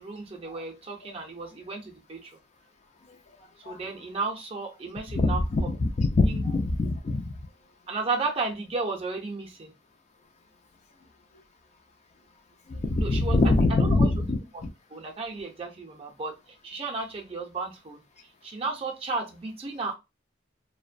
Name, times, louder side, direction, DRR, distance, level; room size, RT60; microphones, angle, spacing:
voice 1, 0.0-2.3 3.7-5.4 6.2-6.4 7.9-9.7 13.0-13.4 13.7-14.1 14.5-14.6 14.9-16.4 16.6-18.0 18.4-19.9, right 3 dB, 30° right, 0.5 m, -33 dB
voice 2, 5.1-7.3 12.7-14.4, left 2 dB, 35° left, 0.4 m, -23 dB
2.5 x 2.1 x 2.4 m
head